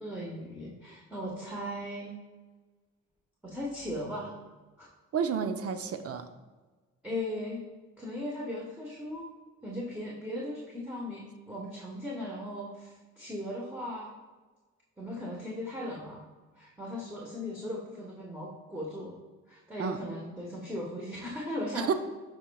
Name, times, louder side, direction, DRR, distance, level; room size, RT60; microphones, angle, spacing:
voice 1, 0.0-2.1 3.4-4.3 4.8-4.9 7.0-7.7 8.0-9.3 9.6-14.2 15.0-16.2 16.5-19.1 19.5-21.9, left 1 dB, 5° right, -5 dB, 1.3 m, -38 dB
voice 2, 5.1-6.3 19.8-20.0 21.8-21.9, right 6 dB, 50° right, 9 dB, 0.6 m, -30 dB
10.5 x 4.6 x 2.3 m, 1.3 s
cardioid pair, 90°, 30 cm